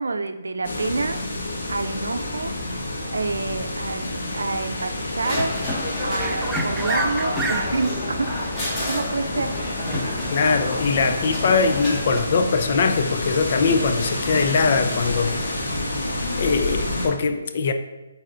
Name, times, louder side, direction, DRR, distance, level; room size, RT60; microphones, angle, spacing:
voice 1, 0.0-2.5 3.1-8.3 8.8-9.5, right 3 dB, 80° right, 8 dB, 0.5 m, -28 dB
sound 1, 0.6-17.1, left 2 dB, 65° left, 1.9 m, -29 dB
sound 2, 5.2-12.2, left 1 dB, 15° left, 1.6 m, -30 dB
sound 3, 6.2-14.5, right 3 dB, 5° right, 0.5 m, -36 dB
voice 2, 10.3-15.7 16.4-17.7, left 4 dB, 45° left, 7 dB, 0.6 m, -22 dB
9.9 x 4.1 x 2.6 m, 1.1 s
hypercardioid pair, 150°, 0 cm